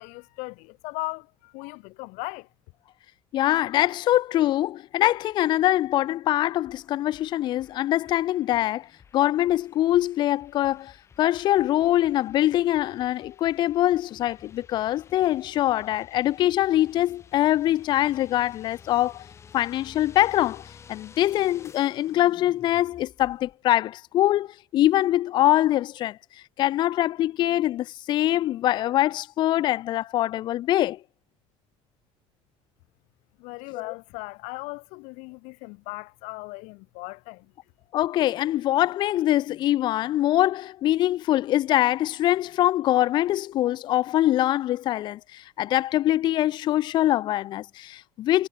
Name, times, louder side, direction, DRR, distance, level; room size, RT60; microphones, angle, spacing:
voice 1, 0.0-2.5 33.4-37.5, left 29 dB, 90° left, 2.4 m, -37 dB
voice 2, 3.3-8.9 9.1-10.9 11.2-19.3 19.5-26.2 26.6-31.0 33.7-33.9 37.9-48.5, left 14 dB, 40° left, 0.6 m, -23 dB
sound 1, 6.6-23.5, left 7 dB, 25° left, 3.3 m, -52 dB
cardioid pair, 180°, 12 cm